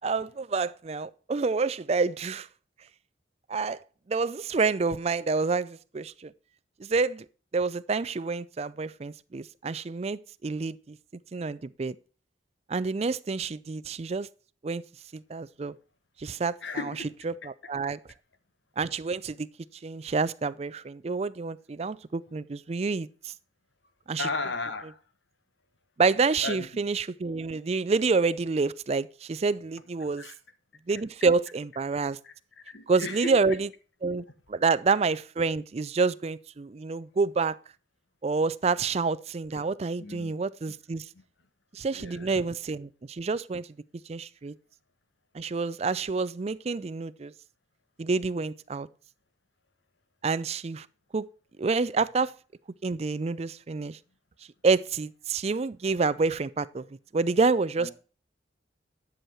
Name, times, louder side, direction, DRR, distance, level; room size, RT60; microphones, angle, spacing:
voice 1, 0.0-2.5 3.5-3.8 4.1-6.3 6.8-7.3 7.5-11.0 11.3-12.0 12.7-14.3 14.6-14.8 15.1-15.7 16.2-16.5 17.2-18.0 18.8-19.5 19.8-23.3 24.1-24.3 26.0-30.2 30.9-32.2 32.9-33.7 34.0-37.6 38.2-41.1 41.7-43.7 44.1-44.5 45.3-47.3 48.0-48.9 50.2-50.9 51.1-51.2 51.6-52.3 52.8-54.0 54.6-56.8 57.1-57.9, right 4 dB, 35° right, 0.4 m, -28 dB
voice 2, 16.6-17.2 24.2-25.0 26.4-26.7 30.2-30.3 32.2-33.6 40.0-40.3 41.9-42.4 57.8-57.9, left 3 dB, 80° left, 1.3 m, -35 dB
10.5 x 6.4 x 4.4 m
head